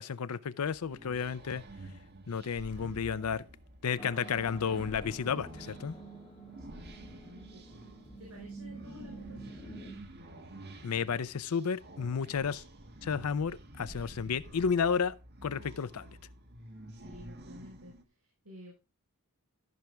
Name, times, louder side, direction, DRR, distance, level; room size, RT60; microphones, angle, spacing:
voice 1, 0.0-1.6 2.3-3.4 3.8-6.0 10.8-12.6 13.0-15.1 15.4-16.0, left 6 dB, 90° left, 0.5 m, -32 dB
sound 1, 0.6-18.0, right 1 dB, 50° right, 1.5 m, -50 dB
sound 2, 4.0-9.9, right 2 dB, 25° left, 2.7 m, -48 dB
voice 2, 6.6-7.9 8.2-10.0 16.9-18.7, left 1 dB, 75° right, 4.6 m, -53 dB
13.5 x 6.3 x 3.4 m
head